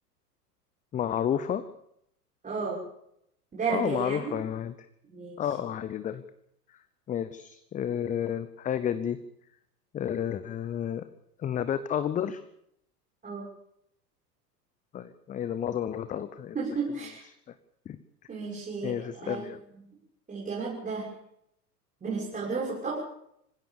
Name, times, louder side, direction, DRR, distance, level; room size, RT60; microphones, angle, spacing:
voice 1, 0.9-1.7 3.7-4.7 5.4-6.2 6.7-6.8 7.1-9.2 9.9-11.0 11.4-12.4 14.9-16.5 17.3-17.4 17.9-18.0 18.8-19.6, left 9 dB, 15° left, 14 dB, 0.8 m, -31 dB
voice 2, 2.4-2.8 3.5-4.3 5.1-5.4 13.2-13.4 16.5-17.2 18.3-19.4 20.3-21.1 22.0-23.0, right 4 dB, 15° right, -5 dB, 6.5 m, -33 dB
25.5 x 16.5 x 6.9 m, 0.74 s
figure-of-eight pair, 90°, 48 cm